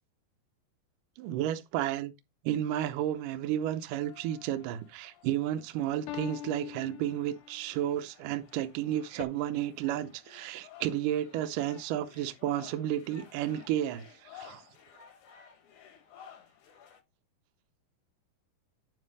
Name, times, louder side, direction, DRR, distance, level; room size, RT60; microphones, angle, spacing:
voice 1, 1.2-2.1 2.4-14.6, right 11 dB, 85° right, 1.8 m, -32 dB
sound 1, 2.8-17.0, left 8 dB, 60° left, 2.3 m, -56 dB
sound 2, 4.0-4.7 6.1-7.7 9.2-9.3, left 12 dB, 85° left, 3.0 m, -43 dB
9.4 x 3.3 x 5.3 m
omnidirectional pair, 4.8 m